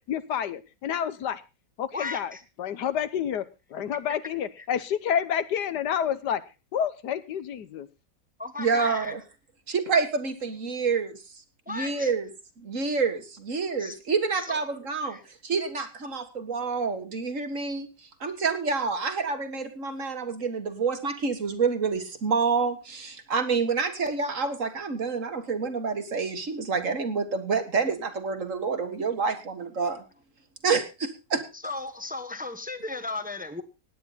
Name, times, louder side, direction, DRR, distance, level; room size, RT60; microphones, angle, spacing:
voice 1, 0.0-1.4 1.8-2.3 2.6-3.4 3.7-6.4 6.7-7.9, left 9 dB, 75° left, 14 dB, 1.5 m, -29 dB
voice 2, 1.9-2.4 4.6-4.7 8.4-9.1 11.7-12.1 13.8-14.0 14.4-14.6 15.0-15.2 31.5-33.6, left 3 dB, 5° right, 10 dB, 0.9 m, -35 dB
voice 3, 8.6-9.2 9.7-11.2 11.7-12.3 12.6-15.2 15.4-17.9 18.2-30.0 30.6-31.4, right 5 dB, 50° right, 7 dB, 1.9 m, -28 dB
17.5 x 9.5 x 4.0 m, 0.30 s
omnidirectional pair, 1.8 m